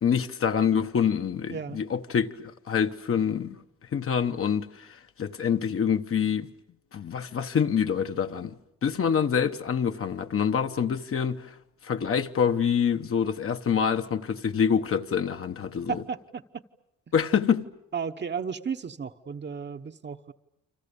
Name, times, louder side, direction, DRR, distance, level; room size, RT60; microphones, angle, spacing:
voice 1, 0.0-3.6 3.9-6.5 6.9-11.6 11.8-16.0 17.1-17.7, left 7 dB, 45° left, 1.2 m, -26 dB
voice 2, 1.5-1.8 15.9-16.6 17.9-20.3, right 6 dB, 35° right, 1.1 m, -34 dB
29.0 x 25.5 x 7.0 m
cardioid pair, 90°, 30 cm